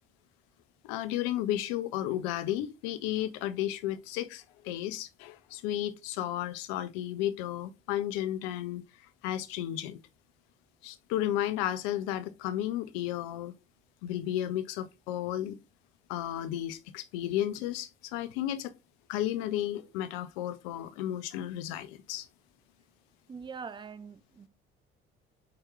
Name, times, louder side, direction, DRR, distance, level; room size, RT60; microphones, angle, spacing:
voice 1, 0.8-8.8 9.2-10.0 10.8-13.5 14.0-15.6 16.1-18.7 19.1-22.3, left 12 dB, 60° left, 0.5 m, -33 dB
voice 2, 23.3-24.5, right 5 dB, 15° right, 0.3 m, -43 dB
4.3 x 3.7 x 3.0 m
figure-of-eight pair, 50°, 30 cm